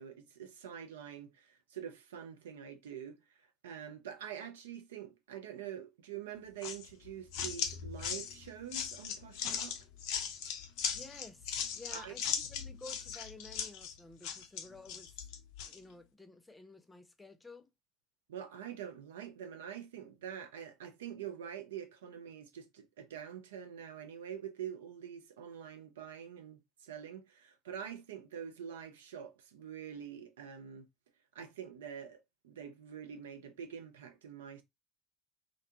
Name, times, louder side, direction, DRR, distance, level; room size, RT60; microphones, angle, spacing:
voice 1, 0.0-3.2 3.6-9.8 11.9-12.1 18.3-30.9 31.3-34.6, right 8 dB, 80° right, 0.4 m, -45 dB
sound 1, 6.6-15.8, left 7 dB, 65° left, 0.4 m, -38 dB
voice 2, 10.9-15.2 15.6-17.7, left 2 dB, 15° left, 0.6 m, -53 dB
2.5 x 2.2 x 2.7 m
hypercardioid pair, 70°, 0 cm